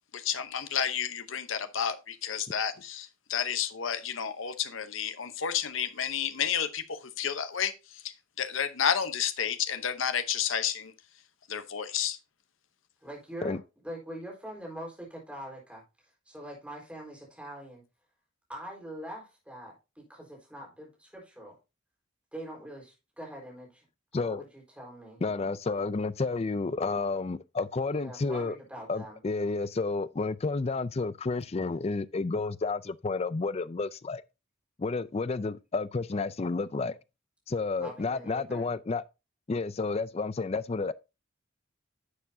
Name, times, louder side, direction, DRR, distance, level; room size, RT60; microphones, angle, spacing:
voice 1, 0.1-8.0 8.4-10.9 11.5-12.2, left 8 dB, 75° left, 0.9 m, -31 dB
voice 2, 13.0-13.6 13.8-17.8 18.5-21.6 22.3-23.8 24.1-25.2 27.9-29.2 37.8-38.6, right 1 dB, 5° right, 4.2 m, -43 dB
voice 3, 24.1-24.5 25.2-28.6 28.9-34.2 34.8-37.0 37.5-39.0 39.5-40.9, left 3 dB, 30° left, 0.4 m, -31 dB
11.0 x 7.1 x 2.7 m
head